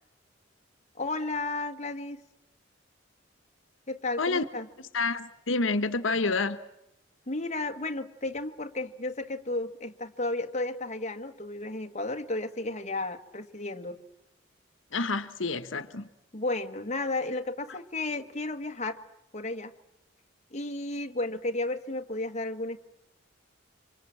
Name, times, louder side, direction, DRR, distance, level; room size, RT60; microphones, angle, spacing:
voice 1, 1.0-2.2 3.9-4.7 7.3-14.0 16.3-19.0 19.3-19.7 20.5-22.8, left 2 dB, 35° left, 1.5 m, -33 dB
voice 2, 4.9-6.6 14.9-16.1 17.7-17.8, left 3 dB, 85° left, 1.2 m, -28 dB
27.5 x 25.5 x 7.7 m
head